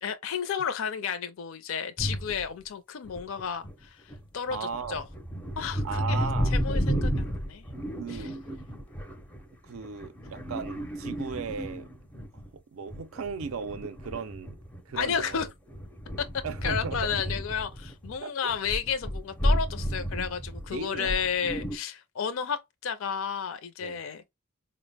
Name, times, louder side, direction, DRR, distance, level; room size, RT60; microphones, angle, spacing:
voice 1, 0.0-5.1 5.6-6.2 6.5-7.7 8.1-8.3 14.9-15.5 16.2-16.3 16.6-24.3, left 7 dB, 65° left, 0.4 m, -32 dB
sound 1, 2.0-2.4 3.1-3.7 4.1-12.5 12.9-18.2 18.5-21.8, equal, 5° left, 0.4 m, -32 dB
voice 2, 4.5-5.0 5.8-6.6 8.0-8.4 9.6-11.9 12.5-14.6 14.9-15.4 16.4-17.2 18.2-18.5 20.7-21.1 23.8-24.0, right 6 dB, 75° right, 0.4 m, -37 dB
4.3 x 2.0 x 3.2 m
head